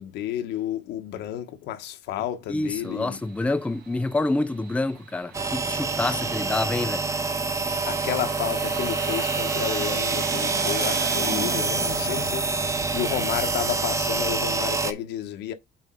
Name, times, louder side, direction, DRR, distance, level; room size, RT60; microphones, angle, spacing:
voice 1, 0.0-3.2 7.9-15.5, left 11 dB, 85° left, 1.2 m, -31 dB
voice 2, 2.5-7.1, left 2 dB, 10° left, 0.5 m, -27 dB
sound 1, 2.6-14.3, right 6 dB, 60° right, 2.2 m, -39 dB
sound 2, 5.3-14.9, right 4 dB, 20° right, 0.8 m, -26 dB
9.0 x 3.3 x 3.8 m
cardioid pair, 110°, 17 cm